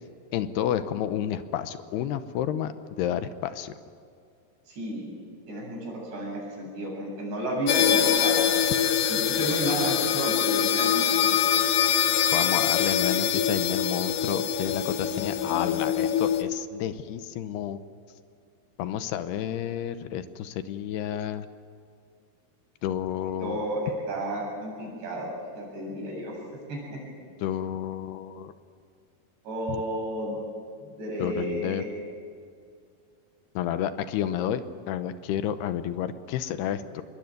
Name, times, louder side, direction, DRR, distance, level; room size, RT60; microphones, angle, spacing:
voice 1, 0.3-3.7 12.3-17.8 18.8-21.5 22.8-23.6 27.4-28.5 29.7-29.8 31.2-31.8 33.6-37.0, left 10 dB, 80° left, 11 dB, 2.9 m, -30 dB
voice 2, 4.7-5.1 5.5-8.5 9.1-11.3 23.4-26.3 26.7-27.0 29.5-30.4 31.0-31.9, right 1 dB, 75° right, -2 dB, 10.0 m, -32 dB
sound 1, 7.7-16.4, left 9 dB, 60° left, 2.3 m, -24 dB
26.5 x 21.5 x 9.3 m, 2.3 s
omnidirectional pair, 4.8 m